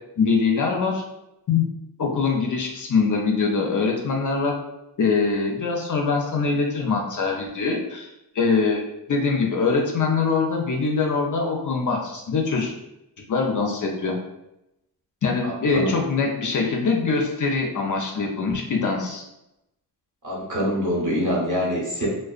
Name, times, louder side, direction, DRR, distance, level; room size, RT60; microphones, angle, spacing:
voice 1, 0.2-1.0 1.5-1.7 2.0-4.6 5.0-8.1 8.3-8.8 9.1-12.7 13.3-14.2 15.2-19.2, left 4 dB, 50° left, 1 dB, 0.5 m, -23 dB
voice 2, 15.4-15.9 20.2-22.1, equal, 45° right, -5 dB, 1.2 m, -25 dB
2.4 x 2.2 x 2.4 m, 0.89 s
cardioid pair, 50°, 41 cm